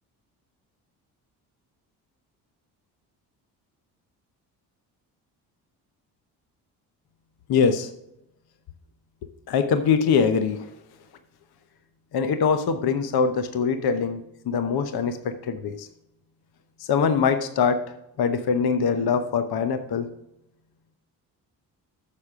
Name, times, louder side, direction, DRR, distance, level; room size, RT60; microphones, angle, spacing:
voice 1, 7.5-7.9 9.5-10.7 12.1-15.9 16.8-17.8 18.2-20.1, left 6 dB, 50° left, 9 dB, 0.9 m, -23 dB
9.7 x 6.8 x 3.6 m, 0.84 s
hypercardioid pair, 55°, 47 cm